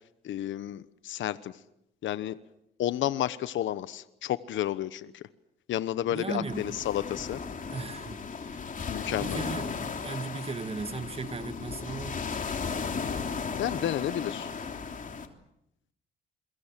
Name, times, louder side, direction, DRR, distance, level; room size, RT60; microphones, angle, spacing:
voice 1, 0.2-1.6 2.0-2.4 2.8-5.3 5.7-7.4 8.9-9.4 13.6-14.5, left 12 dB, 75° left, 1.1 m, -31 dB
voice 2, 6.1-6.8 7.7-8.8 9.1-12.2, right 4 dB, 30° right, 2.2 m, -37 dB
sound 1, 6.5-15.3, left 5 dB, 40° left, 3.4 m, -35 dB
29.0 x 23.0 x 7.6 m
cardioid pair, 90°, 20 cm